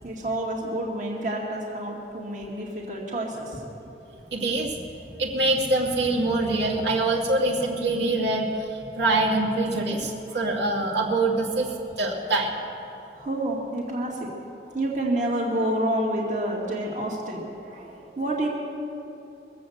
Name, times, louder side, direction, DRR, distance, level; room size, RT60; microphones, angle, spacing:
voice 1, 0.0-3.6 10.3-10.4 13.2-14.3 14.6-18.5, right 1 dB, 45° right, -2 dB, 2.0 m, -29 dB
voice 2, 4.3-4.8 5.2-11.7 12.0-12.5, right 2 dB, 85° right, -3 dB, 2.5 m, -24 dB
22.5 x 7.6 x 7.8 m, 2.8 s
head